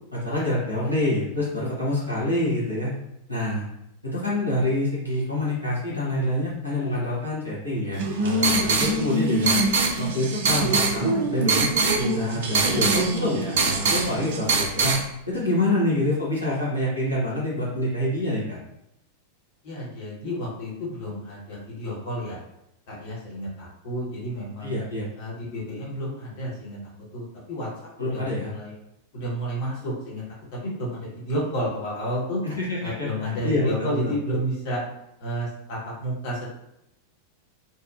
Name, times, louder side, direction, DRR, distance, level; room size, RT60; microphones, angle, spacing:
voice 1, 0.1-2.9 3.3-3.6 4.0-9.5 10.0-14.9 15.3-18.6 24.6-25.1 28.0-28.5 32.4-33.1 33.4-34.1, left 1 dB, 90° left, -8 dB, 0.9 m, -26 dB
sound 1, 7.9-15.0, right 3 dB, 55° right, 0.4 m, -23 dB
voice 2, 19.6-22.4 22.9-24.7 25.2-26.8 27.1-27.7 28.0-28.7 29.1-30.2 30.5-32.4 32.8-34.8 35.2-36.5, equal, 50° left, -5 dB, 1.2 m, -31 dB
2.8 x 2.3 x 2.5 m, 0.82 s
figure-of-eight pair, 90°, 0 cm